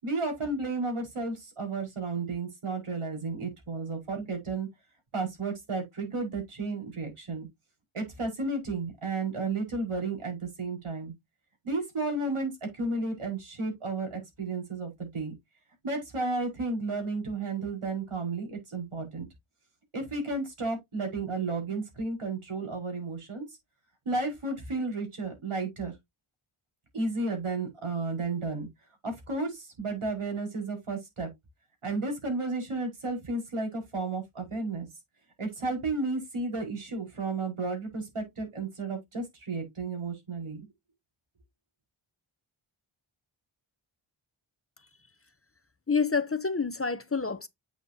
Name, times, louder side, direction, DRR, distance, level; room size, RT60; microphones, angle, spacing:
voice 1, 0.0-4.7 5.1-7.5 7.9-11.1 11.6-15.3 15.8-19.3 19.9-23.4 24.1-25.9 26.9-28.7 29.0-31.3 31.8-34.9 35.4-40.6, right 3 dB, 80° right, 5.3 m, -33 dB
voice 2, 45.9-47.5, left 5 dB, 25° left, 0.8 m, -28 dB
8.1 x 7.0 x 2.8 m
cardioid pair, 55°, 50 cm